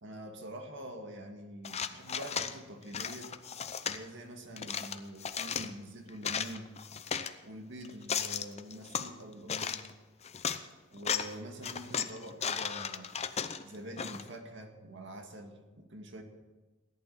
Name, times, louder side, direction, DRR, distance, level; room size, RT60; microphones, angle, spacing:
voice 1, 0.0-3.4 3.8-6.7 7.4-9.8 10.9-13.1 13.6-16.2, right 1 dB, 65° right, 4 dB, 2.0 m, -45 dB
sound 1, 1.6-2.5 2.9-4.0 4.6-5.7 6.1-7.3 7.8-9.1 9.5-9.9 10.2-10.6 11.0-11.3 11.6-14.3, left 7 dB, 35° left, 0.7 m, -35 dB
17.5 x 11.5 x 6.0 m, 1.2 s
head